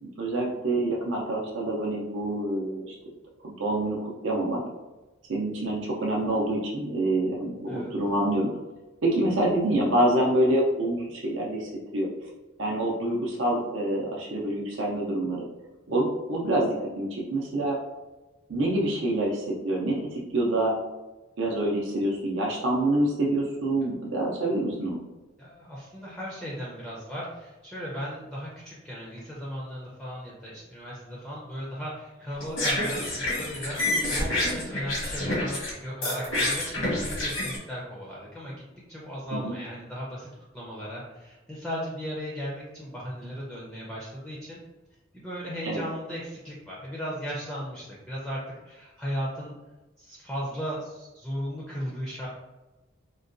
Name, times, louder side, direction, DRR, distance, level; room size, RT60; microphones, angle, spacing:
voice 1, 0.0-2.9 3.4-4.6 5.3-8.5 9.0-12.1 12.6-15.4 15.9-17.8 18.5-20.7 21.4-25.0 39.3-39.5 45.7-45.8, right 1 dB, 70° right, -2 dB, 0.5 m, -26 dB
voice 2, 25.4-38.6 38.9-40.3 40.5-44.6 45.1-49.5 50.0-52.3, equal, 5° left, -5 dB, 0.4 m, -36 dB
sound 1, 32.3-35.7 36.0-37.6, left 1 dB, 90° left, 1.2 m, -28 dB
3.8 x 2.2 x 2.5 m, 1.1 s
head